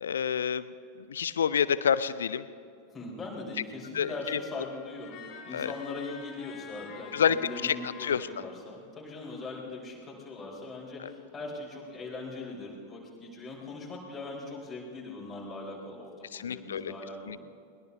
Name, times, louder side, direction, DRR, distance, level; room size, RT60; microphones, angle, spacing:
voice 1, 0.0-0.7 1.0-2.4 3.9-4.4 5.5-5.7 7.1-7.4 7.6-8.3 11.0-11.1 16.3-16.9 17.3-17.4, left 8 dB, 65° left, 16 dB, 0.5 m, -28 dB
voice 2, 2.9-17.4, left 2 dB, 15° left, -4 dB, 4.4 m, -40 dB
sound 1, 4.0-8.4, left 8 dB, 35° left, 3.1 m, -48 dB
22.0 x 20.5 x 2.7 m, 2.4 s
figure-of-eight pair, 90°, 0 cm